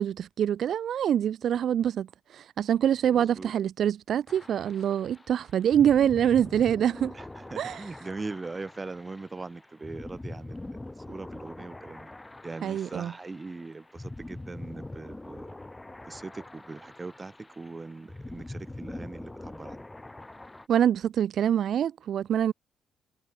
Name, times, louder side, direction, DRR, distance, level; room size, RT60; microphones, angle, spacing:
voice 1, 0.0-7.1 7.6-7.8 12.6-13.1 20.7-22.5, right 9 dB, 65° right, 0.4 m, -25 dB
voice 2, 3.1-3.5 7.1-12.1 12.4-15.5 16.0-19.8, right 3 dB, 25° right, 1.7 m, -41 dB
sound 1, 4.3-20.7, left 2 dB, 15° left, 1.8 m, -44 dB
cardioid pair, 90°, 0 cm